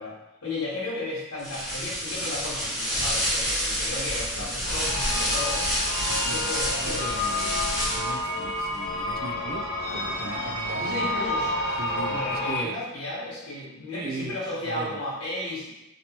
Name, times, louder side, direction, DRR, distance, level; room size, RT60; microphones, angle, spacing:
voice 1, 0.0-5.7 6.2-7.3 10.1-10.3 10.7-11.5 12.1-15.7, left 2 dB, 70° left, -8 dB, 1.0 m, -34 dB
sound 1, 1.4-8.3, equal, 5° right, 1.1 m, -28 dB
sound 2, 4.6-12.6, left 1 dB, 45° left, 0.4 m, -30 dB
voice 2, 6.1-7.6 7.9-11.1 11.7-12.8 13.9-15.0, right 4 dB, 45° right, 5 dB, 0.3 m, -38 dB
2.9 x 2.9 x 2.9 m, 0.95 s
head